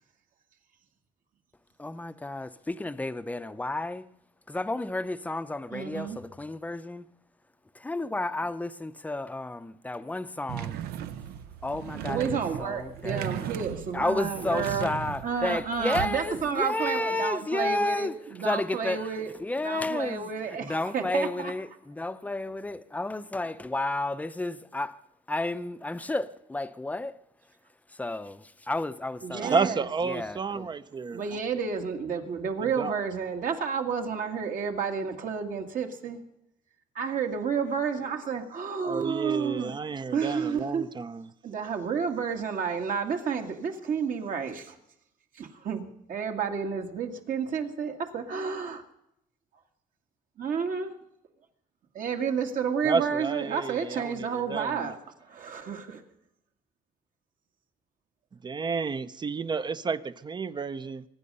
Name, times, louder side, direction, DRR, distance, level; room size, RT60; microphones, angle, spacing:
voice 1, 1.8-4.1 4.5-7.1 7.7-10.8 11.6-13.7 13.9-18.1 18.4-19.1 19.4-25.0 25.3-27.2 27.9-29.7 30.1-30.7, left 2 dB, 10° left, 0.7 m, -32 dB
voice 2, 5.7-6.2 12.0-14.9 15.2-19.3 19.6-21.5 29.2-29.8 31.1-36.2 37.0-39.7 40.1-40.9 41.4-44.8 45.3-48.8 50.4-50.9 52.0-56.0, right 6 dB, 60° right, 2.1 m, -31 dB
sound 1, 10.5-16.5, right 10 dB, 85° right, 0.7 m, -37 dB
voice 3, 29.3-31.4 32.6-32.9 38.8-41.3 52.8-54.9 58.3-61.1, right 5 dB, 30° right, 0.6 m, -31 dB
24.0 x 9.9 x 5.5 m
cardioid pair, 110°, 16 cm